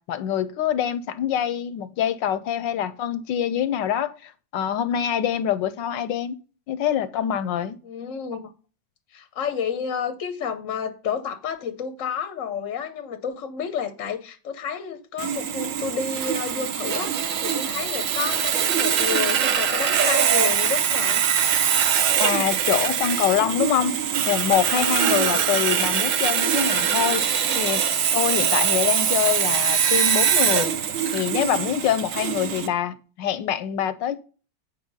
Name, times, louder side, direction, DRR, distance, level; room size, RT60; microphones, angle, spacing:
voice 1, 0.0-6.4 6.7-7.8 22.2-23.9 24.3-27.8 28.1-30.7 31.1-34.2, left 10 dB, 75° left, 1.2 m, -25 dB
voice 2, 7.8-8.5 9.1-21.2 25.2-25.5 32.4-32.6, left 7 dB, 60° left, 0.8 m, -31 dB
Sawing, 15.2-32.7, right 8 dB, 65° right, 0.8 m, -23 dB
8.8 x 4.4 x 5.3 m
omnidirectional pair, 2.2 m